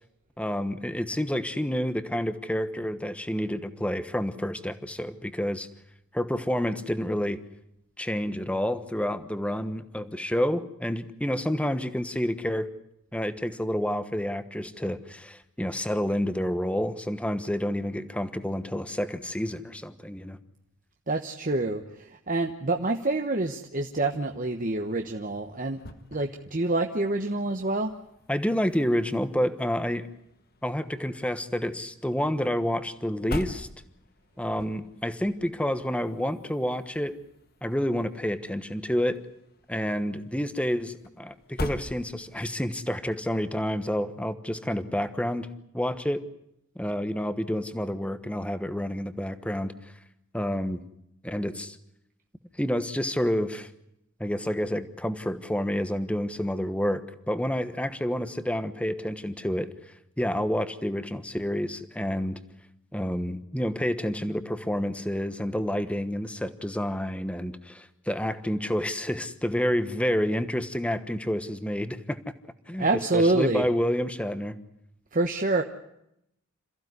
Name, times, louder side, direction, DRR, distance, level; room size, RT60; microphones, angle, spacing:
voice 1, 0.4-5.7 6.1-7.4 8.0-12.7 13.1-20.4 28.3-30.1 30.6-33.7 34.4-37.1 37.6-39.2 39.7-45.5 45.7-46.2 46.7-49.7 50.3-50.8 51.2-51.8 52.6-53.7 54.2-59.7 60.2-62.4 62.9-72.2 72.7-74.5, equal, 5° left, 12 dB, 1.2 m, -29 dB
voice 2, 21.1-25.8 26.1-27.9 72.8-73.7 75.1-75.6, right 2 dB, 40° right, 4 dB, 1.2 m, -27 dB
sound 1, 24.5-42.6, left 1 dB, 45° left, 1.9 m, -44 dB
27.0 x 15.5 x 9.6 m, 0.81 s
head